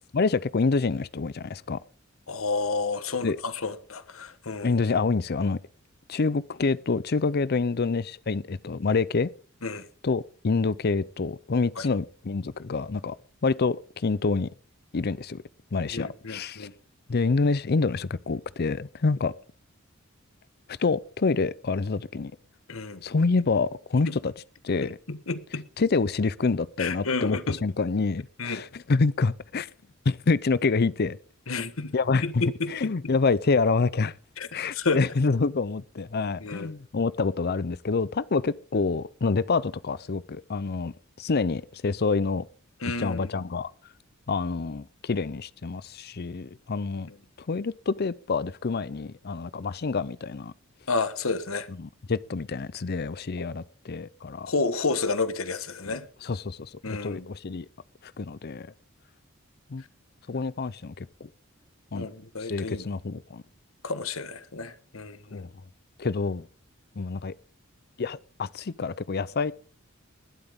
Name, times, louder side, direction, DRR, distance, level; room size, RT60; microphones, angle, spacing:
voice 1, 0.1-1.8 3.2-3.4 4.6-5.6 6.1-9.3 10.0-13.2 13.4-14.5 14.9-15.4 15.7-16.7 17.1-19.3 20.7-22.3 23.0-24.3 24.6-25.0 25.8-29.7 30.1-31.2 31.5-31.7 31.9-32.4 32.7-34.1 34.5-42.4 43.0-43.7 44.3-47.1 47.5-50.5 51.8-54.5 55.9-57.7 58.0-58.7 59.7-59.8 60.3-61.3 61.9-62.1 62.4-63.4 65.3-65.5 66.0-66.4 67.0-67.3 68.0-69.5, left 4 dB, 50° left, 0.6 m, -27 dB
voice 2, 2.3-4.7 9.6-9.8 11.8-11.9 15.9-16.7 22.7-23.0 24.1-24.2 25.1-25.7 26.8-27.6 28.4-28.6 31.5-31.9 32.2-32.9 34.4-35.0 36.4-36.7 42.8-43.3 50.9-51.7 53.4-53.5 54.5-56.0 56.8-57.3 61.9-62.8 63.8-65.5, left 3 dB, 80° left, 1.4 m, -30 dB
20.5 x 12.0 x 3.7 m
head